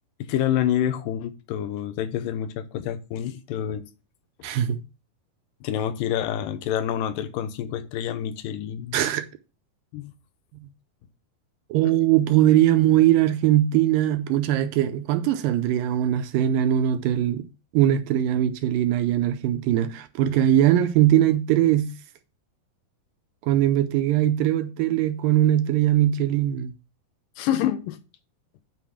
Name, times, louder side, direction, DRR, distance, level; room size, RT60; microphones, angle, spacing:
voice 1, 0.2-3.9 5.6-9.0 9.9-10.1 27.4-28.0, left 10 dB, 75° left, 2.4 m, -27 dB
voice 2, 4.4-4.8 8.9-9.3 11.7-17.5 17.7-21.9 23.4-26.7, right 12 dB, 80° right, 2.2 m, -21 dB
9.3 x 4.0 x 7.1 m
omnidirectional pair, 4.3 m